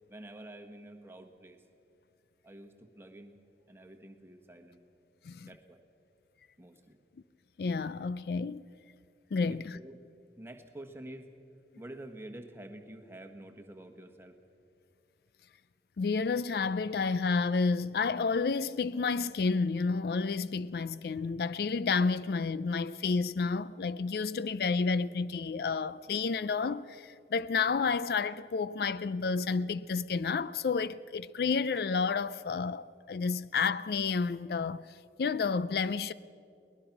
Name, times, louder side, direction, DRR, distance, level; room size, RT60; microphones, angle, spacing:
voice 1, 0.1-1.6 2.4-3.3 3.7-4.8 5.4-5.8 6.6-7.0 9.4-10.0 10.4-11.3 11.8-14.4, right 1 dB, 15° right, 1.3 m, -48 dB
voice 2, 7.6-8.6 9.3-9.8 16.0-36.1, left 4 dB, 60° left, 0.4 m, -30 dB
23.0 x 19.0 x 5.9 m
head